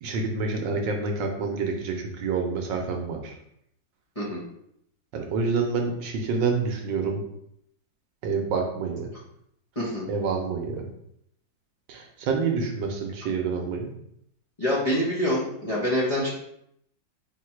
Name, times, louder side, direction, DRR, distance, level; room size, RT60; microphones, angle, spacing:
voice 1, 0.0-3.3 5.1-7.2 8.2-9.1 10.1-10.8 11.9-13.9, right 4 dB, 75° right, 2 dB, 1.3 m, -27 dB
voice 2, 9.7-10.1 14.6-16.3, equal, 30° left, -6 dB, 0.6 m, -26 dB
3.9 x 2.8 x 4.4 m, 0.73 s
omnidirectional pair, 2.1 m